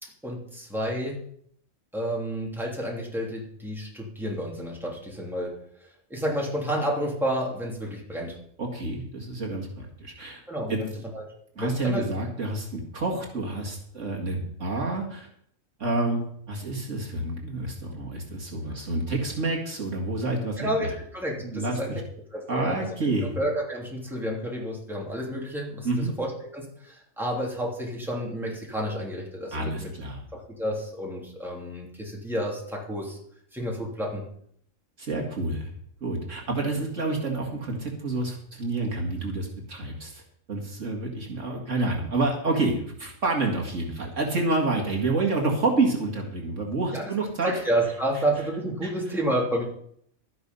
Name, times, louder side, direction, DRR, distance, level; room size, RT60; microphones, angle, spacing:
voice 1, 0.0-1.2 1.9-5.6 6.1-8.4 10.5-11.2 11.6-12.0 18.7-18.8 20.6-21.9 22.3-22.8 23.2-29.9 30.3-33.2 33.5-34.2 46.9-47.1 47.4-49.6, equal, ahead, -3 dB, 3.1 m, -30 dB
voice 2, 8.6-10.4 10.7-10.8 11.6-15.3 15.8-20.7 21.4-22.0 22.5-23.3 25.8-26.1 29.5-30.2 35.0-35.7 36.0-40.2 40.5-47.6 48.8-48.9, right 2 dB, 65° right, 0 dB, 2.3 m, -28 dB
12.5 x 10.5 x 5.5 m, 0.67 s
omnidirectional pair, 1.4 m